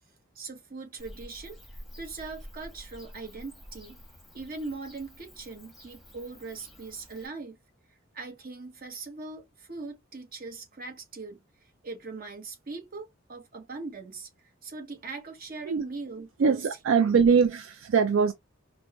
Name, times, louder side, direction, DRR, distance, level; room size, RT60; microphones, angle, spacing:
voice 1, 0.3-4.0 4.3-7.6 8.1-14.3 14.6-16.6 17.0-17.2, right 3 dB, 45° right, 1.0 m, -40 dB
Bird / Cricket, 1.0-7.3, equal, ahead, 1.1 m, -49 dB
voice 2, 16.4-18.3, right 6 dB, 70° right, 0.4 m, -22 dB
4.5 x 2.1 x 2.3 m
head